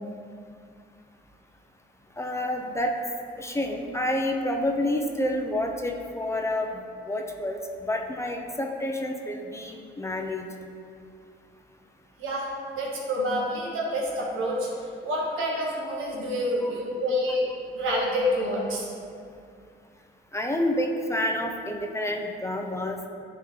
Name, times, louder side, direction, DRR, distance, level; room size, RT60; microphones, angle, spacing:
voice 1, 2.2-2.9 3.4-10.5 16.6-16.7 20.3-23.1, left 1 dB, 15° left, 2 dB, 0.6 m, -29 dB
voice 2, 12.2-12.5 12.7-14.7 15.0-17.5 17.7-18.9, equal, 85° right, -3 dB, 1.5 m, -27 dB
9.9 x 3.8 x 3.1 m, 2.3 s
cardioid pair, 90°, 20 cm